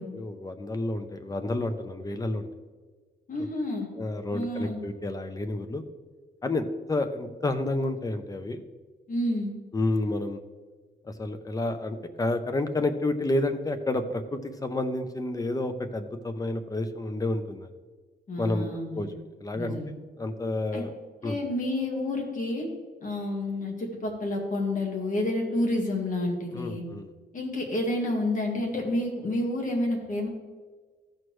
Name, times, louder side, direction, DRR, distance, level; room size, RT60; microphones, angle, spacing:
voice 1, 0.1-2.5 4.0-5.8 6.4-8.6 9.7-10.4 11.0-17.7 18.4-18.7 18.9-19.1 19.4-19.8 20.2-20.9 21.2-21.4 26.5-27.1, left 2 dB, 20° left, 9 dB, 0.6 m, -30 dB
voice 2, 3.3-3.9 4.3-4.8 9.1-9.5 18.3-19.2 19.5-19.9 20.7-20.8 21.2-22.7 23.0-26.8 27.3-30.3, left 1 dB, 45° left, 1 dB, 1.8 m, -29 dB
14.0 x 6.2 x 3.2 m, 1.4 s
wide cardioid pair, 150°, 19 cm